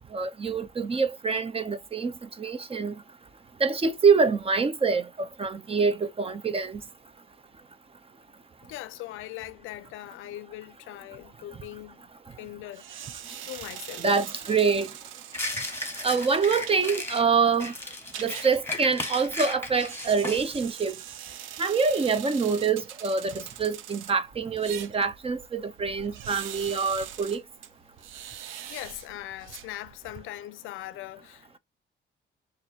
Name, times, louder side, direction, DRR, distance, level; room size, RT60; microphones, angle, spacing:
voice 1, 0.1-3.0 3.6-6.8 14.0-14.9 16.0-17.7 18.2-20.9 21.6-27.4, right 5 dB, 30° right, 0.6 m, -25 dB
voice 2, 8.6-12.1 12.4-14.0 28.7-31.6, left 15 dB, 90° left, 0.5 m, -41 dB
sound 1, 12.7-30.2, right 10 dB, 80° right, 0.6 m, -43 dB
sound 2, 15.3-17.2 17.6-20.4, left 2 dB, 10° left, 1.6 m, -35 dB
6.2 x 2.6 x 2.8 m
cardioid pair, 90°, 20 cm